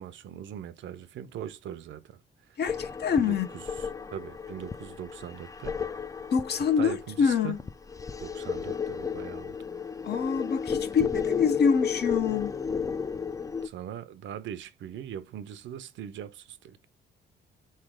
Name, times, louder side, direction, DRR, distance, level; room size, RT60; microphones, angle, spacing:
voice 1, 0.0-2.6 3.2-6.1 6.8-7.6 8.2-9.6 13.6-16.9, right 10 dB, 70° right, 0.6 m, -41 dB
voice 2, 2.6-3.5 6.3-7.6 10.0-12.6, left 6 dB, 55° left, 0.8 m, -26 dB
sound 1, 2.7-13.7, left 6 dB, 15° left, 0.4 m, -33 dB
4.0 x 3.2 x 3.6 m
cardioid pair, 90°, 20 cm